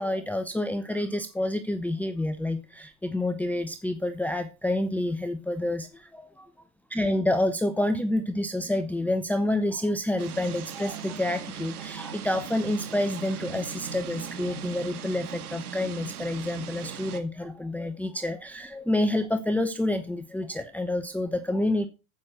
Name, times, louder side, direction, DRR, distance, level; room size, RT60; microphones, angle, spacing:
voice 1, 0.0-21.9, left 1 dB, 5° left, 7 dB, 0.9 m, -28 dB
sound 1, 10.2-17.2, right 7 dB, 80° right, 2.1 m, -39 dB
14.5 x 6.3 x 6.0 m, 0.31 s
hypercardioid pair, 105°, 44 cm